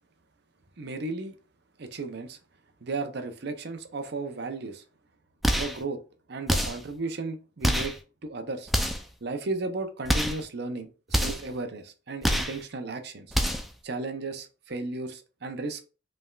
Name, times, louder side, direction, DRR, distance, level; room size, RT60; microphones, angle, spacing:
voice 1, 0.8-1.4 1.8-2.4 2.8-4.8 5.5-6.0 6.3-7.9 8.2-8.7 9.2-13.4 13.8-15.8, right 3 dB, 55° right, 8 dB, 0.6 m, -34 dB
sound 1, 5.4-5.8 6.5-6.9 7.6-8.0 8.7-9.1 10.0-10.4 11.1-11.5 12.2-12.6 13.3-13.7, equal, ahead, 0.4 m, -26 dB
5.4 x 3.4 x 2.3 m, 0.35 s
head